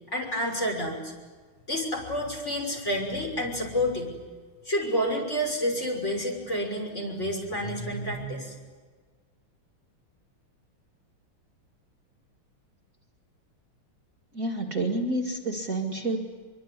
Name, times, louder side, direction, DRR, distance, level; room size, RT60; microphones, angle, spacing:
voice 1, 0.1-1.1 1.7-4.1 4.6-8.5, equal, 30° left, 1 dB, 6.4 m, -29 dB
voice 2, 14.3-16.2, right 2 dB, 40° right, 1 dB, 2.5 m, -29 dB
25.0 x 23.5 x 9.7 m, 1.5 s
omnidirectional pair, 2.3 m